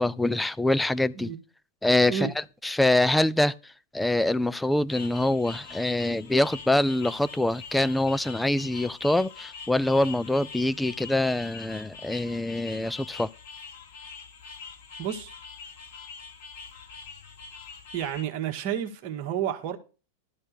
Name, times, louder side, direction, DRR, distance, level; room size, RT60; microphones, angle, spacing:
voice 1, 0.0-1.3 1.8-13.3, left 1 dB, 5° left, 0.5 m, -25 dB
sound 1, 4.9-18.2, left 5 dB, 55° left, 5.7 m, -44 dB
voice 2, 15.0-15.3 17.9-19.8, right 9 dB, 40° right, 1.7 m, -30 dB
12.5 x 4.3 x 8.3 m
figure-of-eight pair, 90°, 0 cm